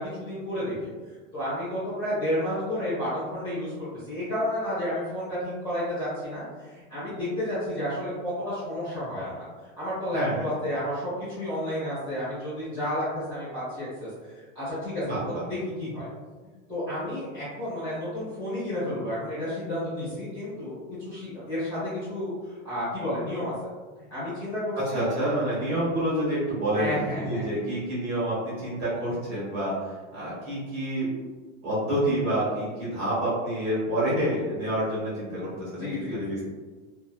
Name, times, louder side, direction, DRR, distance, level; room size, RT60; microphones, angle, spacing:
voice 1, 0.0-16.1 16.7-23.7 24.1-25.1 26.7-27.4 35.8-36.5, left 1 dB, 10° left, -13 dB, 0.7 m, -31 dB
voice 2, 10.1-10.5 15.0-15.4 24.9-31.1 31.6-36.5, right 1 dB, 35° right, -9 dB, 1.2 m, -28 dB
2.8 x 2.0 x 2.2 m, 1.4 s
supercardioid pair, 175°, 39 cm